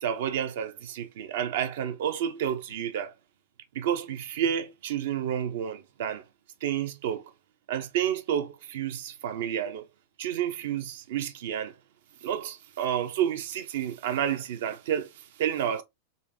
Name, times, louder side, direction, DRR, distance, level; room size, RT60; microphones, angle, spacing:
voice 1, 0.0-3.1 3.7-6.2 6.6-7.2 7.7-9.9 10.2-11.8 12.2-15.8, right 9 dB, 55° right, 0.5 m, -30 dB
3.8 x 2.5 x 2.3 m
figure-of-eight pair, 90°, 0 cm